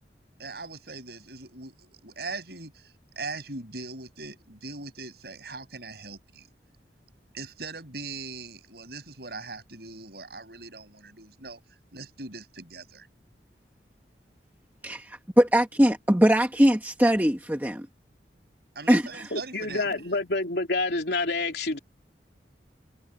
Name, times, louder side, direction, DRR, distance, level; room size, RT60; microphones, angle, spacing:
voice 1, 0.4-6.5 7.3-11.6 11.9-13.1 18.8-19.9, right 3 dB, 65° right, 7.0 m, -40 dB
voice 2, 14.8-17.9 18.9-19.2, equal, 10° right, 1.2 m, -21 dB
voice 3, 19.3-21.8, left 2 dB, 70° left, 3.1 m, -28 dB
head